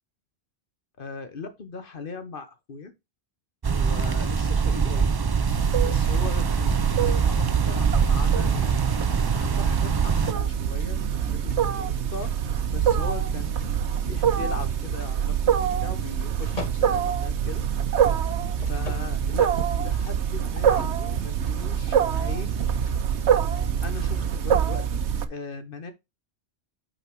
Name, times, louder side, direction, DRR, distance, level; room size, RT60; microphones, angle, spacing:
voice 1, 1.0-2.9 3.7-5.1 5.8-8.8 9.3-12.3 12.7-17.6 18.7-22.5 23.8-25.9, left 4 dB, 55° left, 1.2 m, -39 dB
sound 1, 3.6-10.3, right 5 dB, 35° right, 0.3 m, -24 dB
Wild animals, 5.5-25.2, right 8 dB, 90° right, 1.1 m, -25 dB
sound 2, 7.2-24.2, left 1 dB, 35° left, 2.0 m, -44 dB
8.7 x 4.3 x 4.6 m
omnidirectional pair, 1.1 m